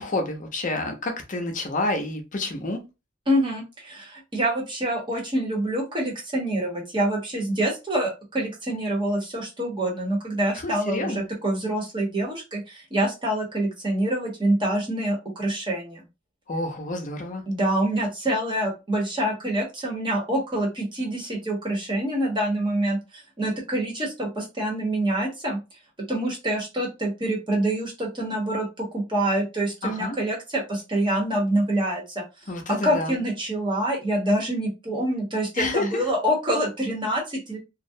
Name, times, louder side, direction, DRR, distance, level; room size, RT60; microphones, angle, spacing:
voice 1, 0.0-2.8 10.6-11.2 16.5-17.4 29.8-30.2 32.5-33.2 35.5-36.1, left 2 dB, 40° left, 0.6 m, -29 dB
voice 2, 3.3-16.0 17.5-25.6 26.1-32.2 32.7-37.6, right 1 dB, 25° right, 0.9 m, -26 dB
2.3 x 2.1 x 2.6 m
head